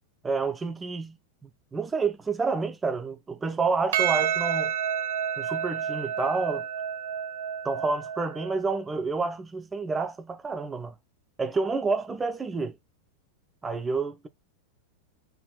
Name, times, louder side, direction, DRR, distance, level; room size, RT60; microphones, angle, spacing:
voice 1, 0.2-1.2 1.4-4.7 5.4-6.7 7.6-10.9 11.4-12.8 13.6-14.3, right 4 dB, 15° right, 0.5 m, -29 dB
Percussion, 3.9-8.6, right 9 dB, 60° right, 0.6 m, -29 dB
3.5 x 2.5 x 2.3 m
figure-of-eight pair, 90°, 0 cm